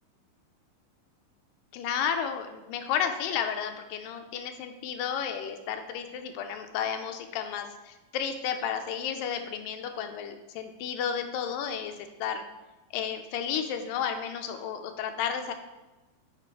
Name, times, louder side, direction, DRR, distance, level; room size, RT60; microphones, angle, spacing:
voice 1, 1.7-11.9 12.2-12.4 12.9-15.5, left 8 dB, 90° left, 6 dB, 2.3 m, -32 dB
7.7 x 4.0 x 4.6 m, 1.0 s
omnidirectional pair, 3.9 m